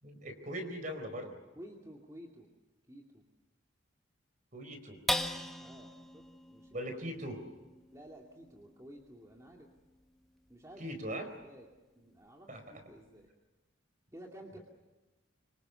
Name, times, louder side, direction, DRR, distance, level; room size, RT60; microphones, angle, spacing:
voice 1, 0.0-1.4 4.5-5.0 6.7-7.4 10.8-11.3 12.5-12.8, equal, 40° right, 7 dB, 4.5 m, -40 dB
voice 2, 1.6-2.5 2.9-3.2 5.6-7.1 7.9-9.7 10.5-11.7 12.0-13.3 14.1-14.6, equal, 15° right, 0 dB, 2.4 m, -53 dB
sound 1, 5.1-11.8 12.3-12.4 12.8-13.2, left 1 dB, ahead, 1.3 m, -41 dB
25.5 x 25.5 x 7.0 m, 1.2 s
head